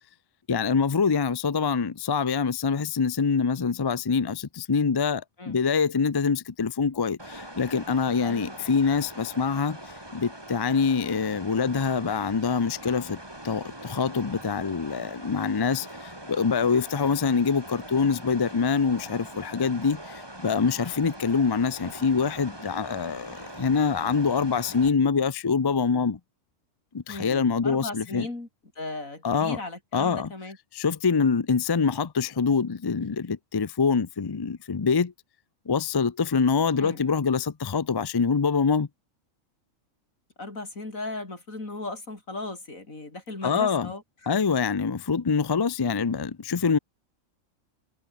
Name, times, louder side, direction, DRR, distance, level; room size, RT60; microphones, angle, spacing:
voice 1, 0.5-9.8 10.1-13.2 13.4-15.9 16.3-26.2 26.9-28.3 29.2-29.6 29.9-30.3 30.7-35.1 35.7-38.9 43.4-43.9 44.3-46.8, left 5 dB, 35° left, 0.4 m, -25 dB
sound 1, 7.2-24.9, right 1 dB, 15° right, 4.1 m, -42 dB
voice 2, 8.2-8.5 23.4-23.5 27.1-28.5 28.8-30.6 36.8-37.1 40.4-44.3, left 2 dB, 75° left, 5.4 m, -37 dB
omnidirectional pair, 1.4 m